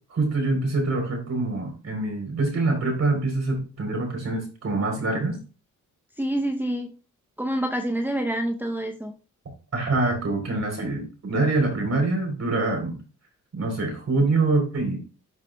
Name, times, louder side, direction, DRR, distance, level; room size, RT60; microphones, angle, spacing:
voice 1, 0.1-5.4 9.7-13.0 13.5-15.0, right 3 dB, 55° right, 1 dB, 3.6 m, -25 dB
voice 2, 6.2-6.9 7.4-9.1, right 1 dB, 5° right, 3 dB, 0.7 m, -27 dB
11.5 x 4.9 x 2.2 m, 0.34 s
cardioid pair, 90°, 32 cm